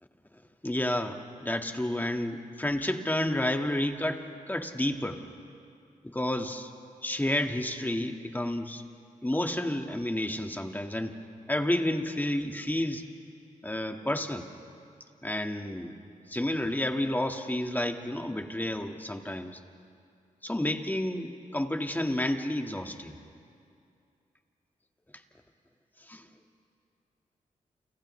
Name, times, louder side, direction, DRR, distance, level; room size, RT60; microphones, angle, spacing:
voice 1, 0.6-5.2 6.0-6.7 7.0-8.8 9.2-11.2 11.5-13.0 13.6-14.5 15.2-15.9 16.3-19.6 20.4-23.2 26.1-26.2, left 1 dB, 10° left, 4 dB, 1.7 m, -30 dB
29.0 x 28.5 x 3.3 m, 2.5 s
cardioid pair, 55°, 15 cm